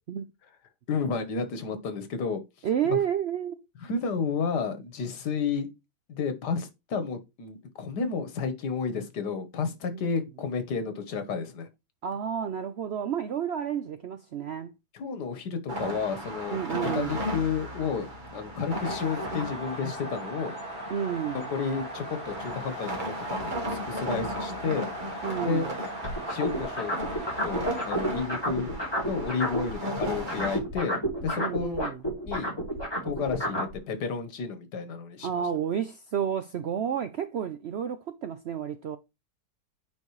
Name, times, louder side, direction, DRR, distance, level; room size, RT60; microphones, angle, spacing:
voice 1, 0.9-2.4 2.9-3.0 3.8-5.7 6.1-11.7 14.9-20.5 21.3-25.1 25.5-25.7 26.3-26.9 27.4-28.8 29.1-31.8 32.3-32.5 33.0-35.5, left 5 dB, 85° left, 1.7 m, -31 dB
voice 2, 2.6-3.6 9.9-10.1 12.0-14.7 16.5-17.2 20.9-21.5 25.2-25.8 31.4-32.0 35.2-39.0, right 8 dB, 70° right, 0.6 m, -30 dB
sound 1, 15.7-30.6, equal, 30° right, 1.5 m, -36 dB
sound 2, 18.7-28.3, equal, 5° right, 4.1 m, -40 dB
sound 3, 26.0-29.7 30.0-33.7, equal, 15° left, 2.5 m, -30 dB
8.3 x 5.2 x 3.1 m
omnidirectional pair, 1.7 m